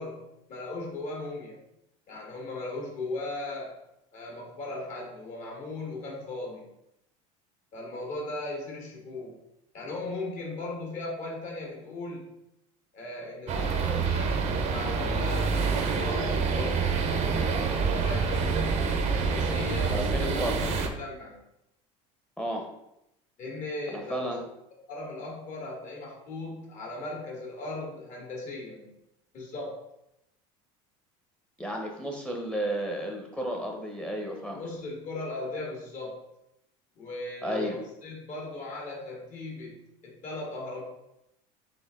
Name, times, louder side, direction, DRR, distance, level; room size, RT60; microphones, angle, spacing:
voice 1, 0.0-1.6 2.1-3.7 4.1-6.7 7.7-9.3 9.7-12.4 12.9-16.8 17.7-18.6 19.1-21.3 23.4-24.4 24.9-28.9 29.3-29.7 34.5-36.2 36.9-37.7 38.0-40.8, left 2 dB, 50° left, -1 dB, 1.7 m, -37 dB
sound 1, 13.5-20.9, right 5 dB, 45° right, 0.7 m, -27 dB
voice 2, 19.9-20.5 22.4-22.6 23.9-24.4 31.6-34.6 37.4-37.8, equal, 5° left, 1 dB, 0.8 m, -32 dB
4.4 x 3.3 x 3.7 m, 0.84 s
supercardioid pair, 115°, 16 cm